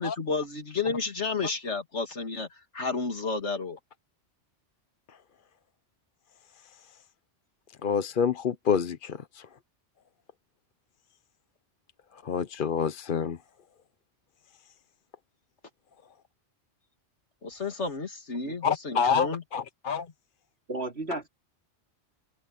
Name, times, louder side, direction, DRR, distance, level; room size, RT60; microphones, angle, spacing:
voice 1, 0.0-3.8 17.4-19.4, left 4 dB, 75° left, 2.9 m, -32 dB
voice 2, 7.8-9.5 12.2-13.4 18.6-20.1, left 6 dB, 50° left, 0.9 m, -27 dB
voice 3, 20.7-21.3, right 2 dB, 60° right, 3.0 m, -33 dB
open air
omnidirectional pair, 1.2 m